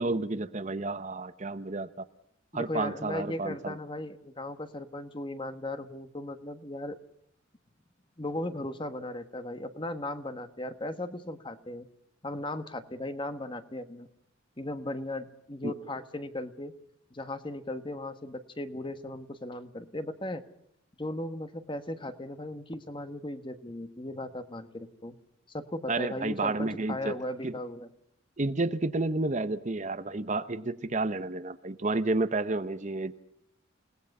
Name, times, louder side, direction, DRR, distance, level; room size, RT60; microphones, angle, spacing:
voice 1, 0.0-2.0 2.5-3.8 15.6-15.7 25.9-27.2 27.4-27.5 28.4-33.2, right 2 dB, 35° right, 11 dB, 0.9 m, -31 dB
voice 2, 2.5-7.0 8.2-11.9 12.2-14.1 14.6-16.7 17.1-20.4 21.0-25.1 25.5-27.9, left 1 dB, 25° left, 9 dB, 1.4 m, -37 dB
28.5 x 18.5 x 5.5 m, 0.73 s
head